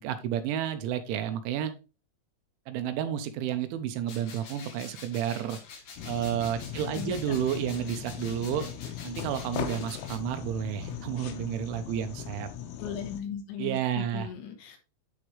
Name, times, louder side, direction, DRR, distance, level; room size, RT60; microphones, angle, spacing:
voice 1, 0.0-1.7 2.7-5.6 6.1-8.7 9.0-12.5 13.6-14.3, right 10 dB, 85° right, 9 dB, 3.1 m, -31 dB
sound 1, 4.1-10.2, left 5 dB, 50° left, 3.1 m, -47 dB
sound 2, 6.0-13.2, left 9 dB, 90° left, 3.6 m, -39 dB
voice 2, 6.9-7.3 7.6-7.8 12.8-14.8, left 8 dB, 70° left, 4 dB, 3.3 m, -38 dB
10.5 x 4.3 x 3.2 m, 0.31 s
omnidirectional pair, 5.6 m